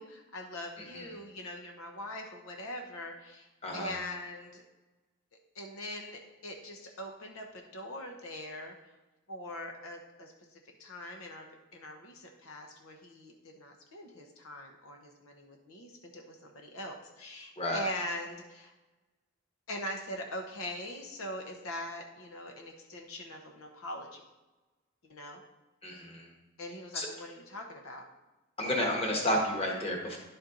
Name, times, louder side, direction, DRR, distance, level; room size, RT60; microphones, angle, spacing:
voice 1, 0.0-3.5 3.7-4.6 5.5-8.7 9.3-18.7 19.7-24.2 25.1-25.4 26.6-28.1 28.6-29.2, left 1 dB, 80° left, 3 dB, 0.9 m, -42 dB
voice 2, 3.6-4.0 17.6-17.8 25.8-26.3 26.9-27.1 28.6-30.2, left 1 dB, 25° left, 0 dB, 1.3 m, -31 dB
10.5 x 4.3 x 3.8 m, 1.1 s
head